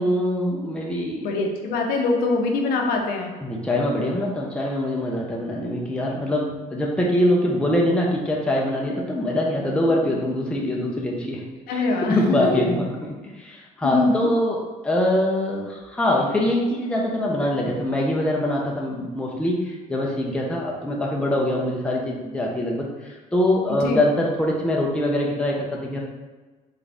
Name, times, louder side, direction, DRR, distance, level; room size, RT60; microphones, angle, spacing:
voice 1, 0.0-1.3 3.4-11.4 11.7-14.6 14.8-26.0, left 1 dB, 5° left, -3 dB, 0.7 m, -23 dB
voice 2, 1.2-3.3 11.7-12.7 13.8-14.3 23.8-24.0, left 3 dB, 85° left, 2 dB, 0.9 m, -23 dB
4.0 x 3.6 x 3.5 m, 1.3 s
cardioid pair, 130°, 15 cm